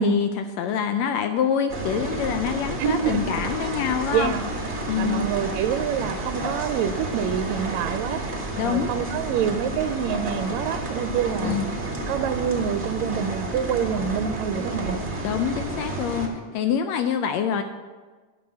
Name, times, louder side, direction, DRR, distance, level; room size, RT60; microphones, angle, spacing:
voice 1, 0.0-4.3 4.9-5.3 8.6-8.9 11.3-11.7 15.2-17.6, left 8 dB, 85° left, 7 dB, 1.6 m, -26 dB
sound 1, 1.7-16.3, right 2 dB, 35° right, 0.8 m, -31 dB
voice 2, 2.8-3.2 4.1-4.4 5.0-8.2 8.6-11.6 12.1-15.0, right 8 dB, 80° right, 9 dB, 1.7 m, -26 dB
11.0 x 6.1 x 7.4 m, 1.4 s
omnidirectional pair, 3.6 m